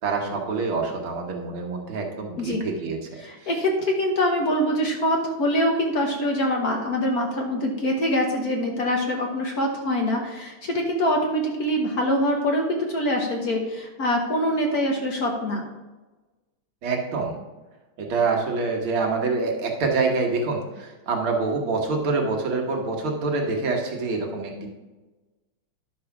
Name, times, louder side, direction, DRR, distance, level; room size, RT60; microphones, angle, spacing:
voice 1, 0.0-3.0 3.4-3.5 16.8-17.4 18.0-24.7, right 4 dB, 75° right, 1 dB, 2.1 m, -26 dB
voice 2, 3.2-15.6, equal, 50° left, 1 dB, 1.4 m, -24 dB
10.5 x 4.8 x 5.9 m, 1.2 s
omnidirectional pair, 2.3 m